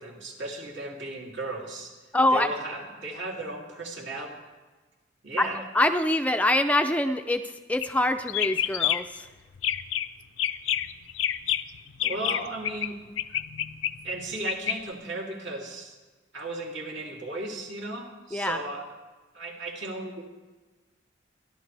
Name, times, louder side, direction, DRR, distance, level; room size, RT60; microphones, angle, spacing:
voice 1, 0.0-1.9 2.3-4.3 5.2-5.6 12.0-13.0 14.0-15.9 16.3-18.8 19.3-20.2, right 2 dB, 70° right, -2 dB, 3.0 m, -35 dB
voice 2, 2.1-2.5 5.4-9.3 18.3-18.6, left 1 dB, 5° left, 6 dB, 0.4 m, -25 dB
sound 1, 7.7-8.0 8.3-9.2 9.5-10.1 10.4-12.9 13.2-14.8, left 11 dB, 85° left, 0.5 m, -28 dB
28.0 x 11.5 x 3.4 m, 1.2 s
head